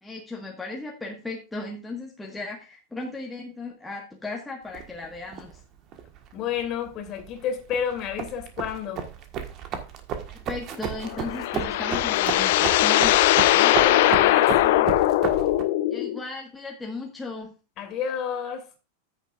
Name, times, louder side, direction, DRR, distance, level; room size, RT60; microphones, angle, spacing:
voice 1, 0.0-5.6 10.3-13.2 15.9-17.5, left 2 dB, 5° left, 1.6 m, -36 dB
sound 1, 4.7-15.6, right 8 dB, 35° right, 1.5 m, -34 dB
voice 2, 6.3-9.0 13.5-14.9 17.8-18.7, left 8 dB, 35° left, 2.8 m, -30 dB
sound 2, 11.0-16.2, left 14 dB, 50° left, 0.6 m, -20 dB
14.5 x 6.7 x 2.5 m
figure-of-eight pair, 90°, 0 cm